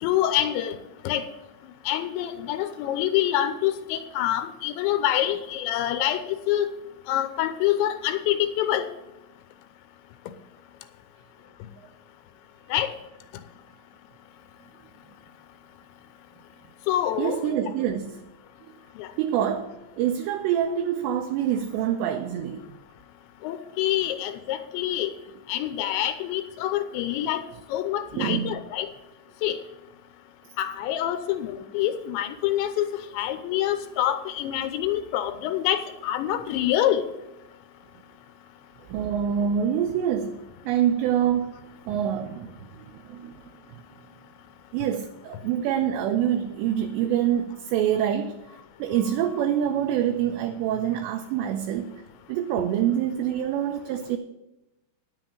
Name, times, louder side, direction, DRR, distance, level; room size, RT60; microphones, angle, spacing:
voice 1, 0.0-0.8 1.0-1.2 1.9-6.2 6.5-6.7 7.1-8.9 12.7-12.9 16.9-17.5 19.0-19.1 23.4-25.1 25.5-27.4 27.7-28.9 29.4-29.6 30.6-32.9 33.1-37.0, left 12 dB, 85° left, 2.9 m, -26 dB
voice 2, 17.2-18.2 19.2-22.8 28.1-28.5 38.9-41.5 41.9-43.4 44.7-48.4 48.8-51.9 52.3-54.2, right 9 dB, 80° right, 2.7 m, -26 dB
10.5 x 7.7 x 7.7 m
omnidirectional pair, 5.4 m